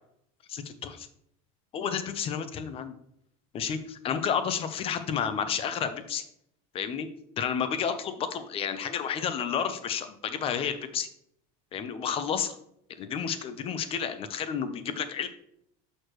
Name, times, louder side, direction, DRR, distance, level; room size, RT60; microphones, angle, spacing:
voice 1, 0.5-1.1 1.7-2.9 3.5-6.2 6.7-7.1 7.4-11.1 11.7-12.6 13.0-15.3, left 7 dB, 30° left, 11 dB, 0.7 m, -31 dB
6.6 x 6.4 x 3.1 m, 0.72 s
cardioid pair, 145°, 18 cm